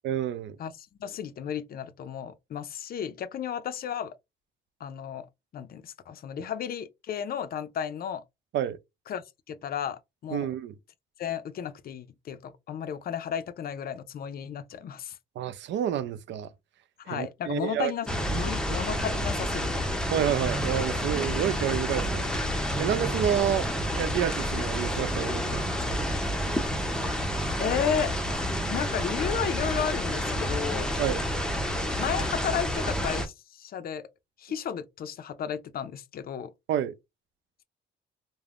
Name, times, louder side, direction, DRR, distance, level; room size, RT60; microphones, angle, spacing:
voice 1, 0.0-0.6 8.5-8.8 10.3-10.7 15.4-16.5 17.1-17.9 20.1-22.3 22.8-23.7 23.9-26.0 31.0-31.2 36.7-36.9, right 10 dB, 65° right, 0.4 m, -29 dB
voice 2, 0.6-4.2 4.8-5.3 5.5-8.2 9.1-10.5 11.2-15.2 17.0-19.7 27.6-28.2 28.7-31.0 32.0-34.0 34.4-36.5, left 8 dB, 50° left, 0.5 m, -33 dB
sound 1, 18.1-33.3, equal, 5° left, 0.6 m, -29 dB
3.3 x 2.0 x 2.4 m
cardioid pair, 90°, 20 cm